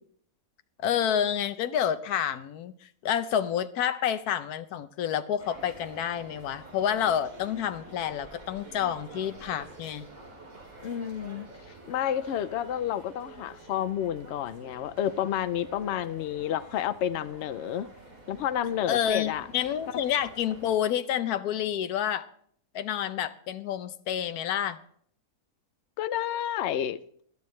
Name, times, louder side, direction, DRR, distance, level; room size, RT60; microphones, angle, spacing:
voice 1, 0.8-10.1 18.9-22.3 22.7-24.8, left 9 dB, 80° left, 1.2 m, -29 dB
sound 1, 5.4-20.7, right 2 dB, 60° right, 3.4 m, -49 dB
voice 2, 10.8-11.5 11.9-17.9 18.3-19.5 26.0-27.2, left 10 dB, 60° left, 0.8 m, -30 dB
19.0 x 12.0 x 3.2 m
omnidirectional pair, 1.6 m